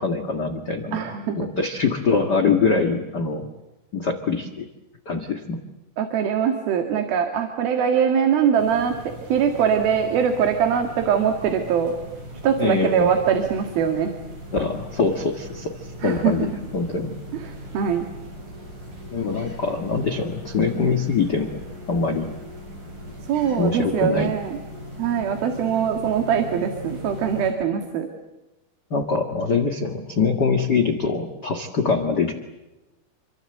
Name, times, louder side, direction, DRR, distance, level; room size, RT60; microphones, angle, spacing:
voice 1, 0.0-1.0 1.4-3.5 3.9-4.6 5.0-5.6 12.6-13.1 14.5-16.5 16.7-17.1 19.1-21.6 21.9-22.3 23.6-24.3 28.9-32.3, left 4 dB, 55° left, 5 dB, 1.1 m, -23 dB
voice 2, 0.9-1.5 6.0-11.9 12.4-14.1 16.0-16.7 17.3-18.0 23.2-24.6 25.0-28.1, right 7 dB, 65° right, 5 dB, 3.6 m, -22 dB
sound 1, 8.6-27.5, equal, 50° right, 9.6 m, -39 dB
27.5 x 24.5 x 7.9 m, 1.0 s
omnidirectional pair, 4.8 m